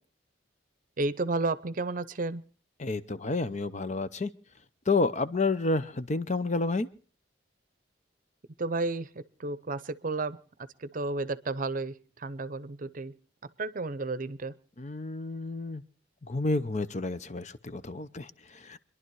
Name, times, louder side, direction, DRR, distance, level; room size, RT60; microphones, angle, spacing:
voice 1, 1.0-2.4 8.6-13.1 13.4-14.6, right 3 dB, 50° right, 17 dB, 0.7 m, -32 dB
voice 2, 2.8-4.3 4.9-6.9 14.8-15.8 16.3-18.8, left 3 dB, 40° left, 13 dB, 0.7 m, -30 dB
26.0 x 11.0 x 4.7 m, 0.41 s
head